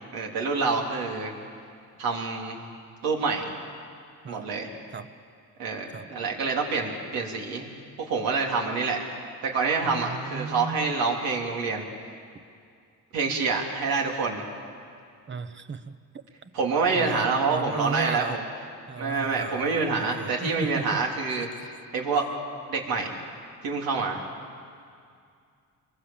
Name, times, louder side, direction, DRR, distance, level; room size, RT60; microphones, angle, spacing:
voice 1, 0.1-1.3 2.0-2.6 3.0-3.5 4.3-4.7 5.6-7.7 8.0-9.0 9.4-11.8 13.1-14.4 16.5-18.4 19.0-22.2 22.7-23.1 23.6-24.2, right 4 dB, 85° right, 0 dB, 3.7 m, -27 dB
voice 2, 9.8-10.9 15.3-16.0 16.4-16.5 17.0-18.4 18.9-21.0 21.3-21.4, right 5 dB, 35° right, 11 dB, 1.1 m, -35 dB
27.0 x 22.5 x 7.3 m, 2.3 s
cardioid pair, 105°, 35 cm